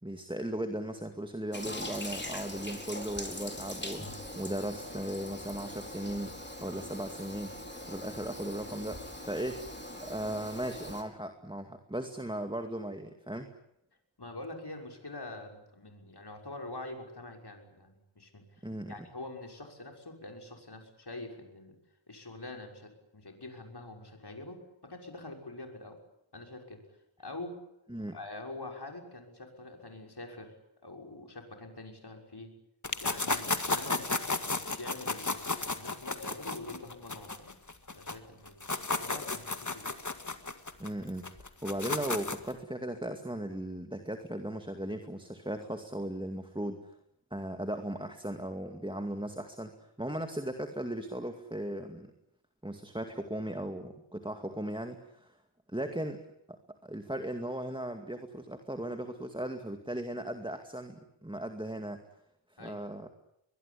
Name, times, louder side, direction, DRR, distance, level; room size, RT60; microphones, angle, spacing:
voice 1, 0.0-7.5 7.9-9.7 10.0-13.5 18.6-18.9 27.9-28.2 40.8-41.4 41.6-46.9 47.3-52.1 52.6-55.4 55.7-56.2 56.5-62.0 62.6-63.1, right 1 dB, 10° right, 6 dB, 2.2 m, -37 dB
Toilet flush, 1.5-11.0, left 1 dB, 20° left, 4.5 m, -42 dB
voice 2, 14.2-18.6 18.9-21.8 22.1-26.0 26.3-26.8 27.2-27.6 28.1-30.6 30.8-32.5 33.0-37.5 37.9-38.7 39.0-39.9 55.8-55.9 62.6-62.9, left 2 dB, 55° left, 3 dB, 6.2 m, -45 dB
sound 1, 32.8-38.1 38.5-42.5, left 3 dB, 40° left, 2.0 m, -33 dB
22.5 x 22.0 x 9.9 m, 0.80 s
wide cardioid pair, 60°, 47 cm